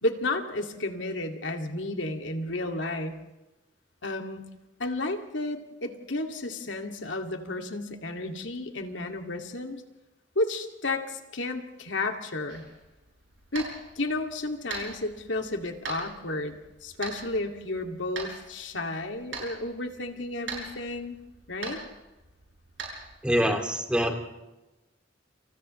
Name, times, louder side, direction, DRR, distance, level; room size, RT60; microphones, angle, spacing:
voice 1, 0.0-3.2 4.0-4.5 4.8-9.8 10.4-12.6 13.5-13.7 14.0-21.2 21.5-21.8, left 2 dB, 80° left, 4 dB, 2.4 m, -32 dB
sound 1, 12.5-23.2, right 4 dB, 70° right, 7.7 m, -42 dB
voice 2, 23.2-24.1, equal, 5° right, 4 dB, 2.6 m, -25 dB
29.0 x 28.0 x 3.3 m, 1.0 s
head